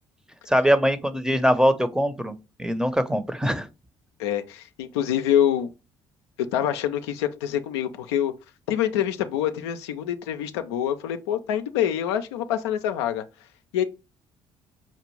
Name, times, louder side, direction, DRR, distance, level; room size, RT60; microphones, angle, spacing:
voice 1, 0.5-3.7, equal, 5° right, 0.6 m, -22 dB
voice 2, 4.2-5.7 6.5-8.3 8.7-13.2 13.7-13.8, left 10 dB, 90° left, 0.4 m, -25 dB
5.4 x 2.5 x 3.1 m
hypercardioid pair, 55°, 14 cm